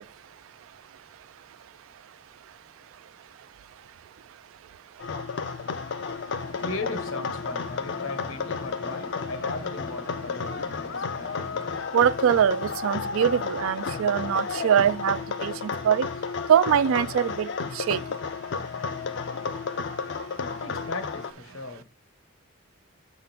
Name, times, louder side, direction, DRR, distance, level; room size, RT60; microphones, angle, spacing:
sound 1, 5.0-21.3, left 5 dB, 55° left, 0.4 m, -32 dB
voice 1, 6.4-11.9 18.5-21.8, left 2 dB, 75° left, 1.0 m, -38 dB
voice 2, 11.9-16.1 16.5-17.5 17.8-18.0, right 8 dB, 75° right, 0.3 m, -23 dB
6.5 x 3.6 x 5.9 m
head